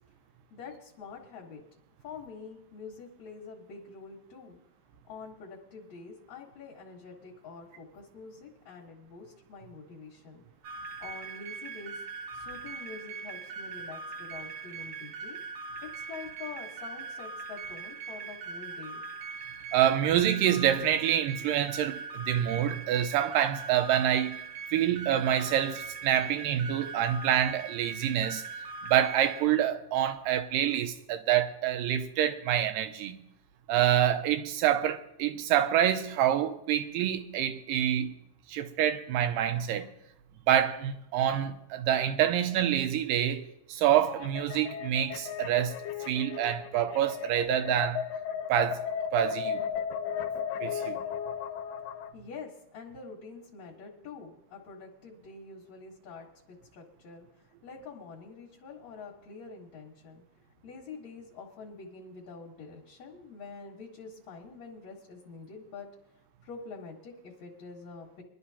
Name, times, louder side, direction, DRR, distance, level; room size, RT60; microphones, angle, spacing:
voice 1, 0.5-1.6 2.0-4.6 5.0-10.4 11.0-12.0 12.3-15.4 15.8-19.0 52.1-60.2 60.6-65.9 66.4-68.2, left 5 dB, 60° left, 2.5 m, -46 dB
sound 1, 10.6-29.4, right 5 dB, 65° right, 1.6 m, -41 dB
voice 2, 19.7-24.4 24.7-28.4 28.9-33.2 33.7-38.1 38.5-39.9 40.5-45.8 46.1-48.0 48.5-48.8 49.1-49.6 50.6-51.0, right 10 dB, 85° right, 2.4 m, -27 dB
sound 2, 43.9-52.1, left 8 dB, 80° left, 2.4 m, -35 dB
23.0 x 11.5 x 2.8 m
omnidirectional pair, 3.9 m